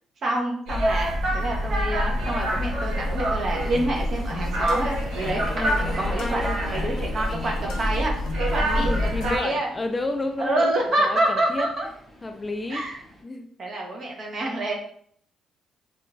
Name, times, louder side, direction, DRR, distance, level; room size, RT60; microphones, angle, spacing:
voice 1, 0.2-8.1 8.5-9.7 10.4-11.9 12.7-13.0 13.6-14.7, right 1 dB, 55° right, 0 dB, 0.7 m, -27 dB
sound 1, 0.7-9.4, equal, 80° right, 0.9 m, -26 dB
Subway metro underground, 1.7-13.2, equal, 15° right, 1.0 m, -44 dB
sound 2, 3.6-9.6, left 3 dB, 85° left, 0.5 m, -38 dB
voice 2, 5.5-6.6 8.6-11.7 12.2-12.8 13.2-13.5, left 2 dB, 20° left, 6 dB, 0.3 m, -31 dB
3.0 x 2.4 x 2.3 m, 0.62 s
cardioid pair, 90°, 0 cm